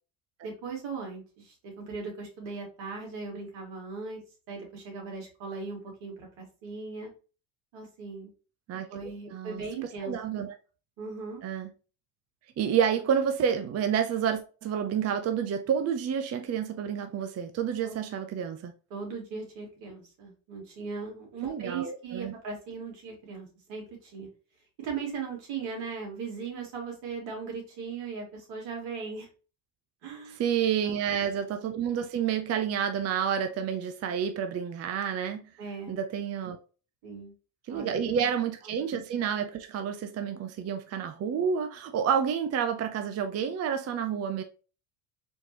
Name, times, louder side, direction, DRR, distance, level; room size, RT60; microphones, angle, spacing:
voice 1, 0.4-4.2 4.5-7.1 7.7-8.3 8.9-10.4 11.0-11.4 17.8-17.9 18.9-24.3 24.8-29.3 30.0-30.4 30.8-31.0 35.6-36.0 37.0-37.3 37.7-38.3 38.7-38.8, right 5 dB, 75° right, 2.3 m, -38 dB
voice 2, 9.3-9.6 10.0-10.5 11.4-11.7 12.6-18.7 21.4-22.3 30.4-35.4 35.9-36.6 37.7-44.4, right 8 dB, 35° right, 0.5 m, -29 dB
4.3 x 3.0 x 2.9 m
supercardioid pair, 85°, 45 cm